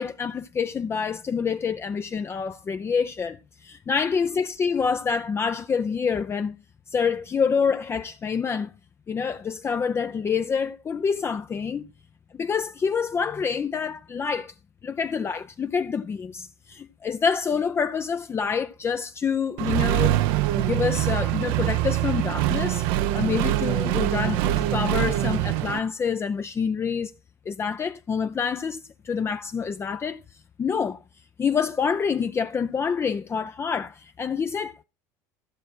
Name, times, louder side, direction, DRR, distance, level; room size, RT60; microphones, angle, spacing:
voice 1, 0.0-6.6 6.9-8.7 9.1-11.9 12.4-14.5 14.8-20.2 20.5-22.8 23.1-27.1 27.5-30.2 30.6-31.0 31.4-34.8, left 6 dB, 30° left, 0.6 m, -27 dB
Accelerating revving vroom, 19.6-25.8, right 14 dB, 70° right, 0.7 m, -24 dB
15.0 x 6.4 x 4.4 m
hypercardioid pair, 85°, 9 cm